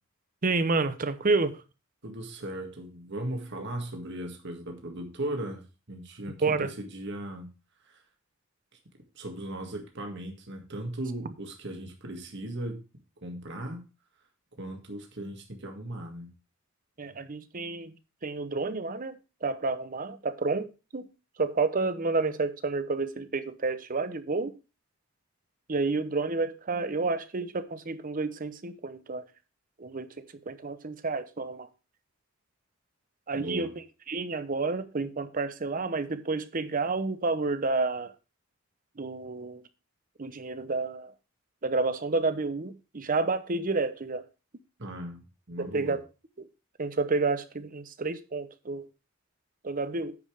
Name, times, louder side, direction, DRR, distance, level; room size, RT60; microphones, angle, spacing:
voice 1, 0.4-1.6 6.4-6.7 17.0-18.0 18.2-21.1 21.4-24.5 25.7-29.3 29.8-31.7 33.3-38.1 39.0-39.6 40.2-41.1 41.6-44.3 45.6-46.0 46.4-46.5 46.8-48.9 49.6-50.2, right 3 dB, 40° right, 0.8 m, -30 dB
voice 2, 2.0-7.5 7.8-8.0 9.2-12.8 13.2-13.9 14.6-16.3 33.3-33.7 44.8-46.0, right 1 dB, 60° right, 1.9 m, -37 dB
9.6 x 5.4 x 4.9 m
head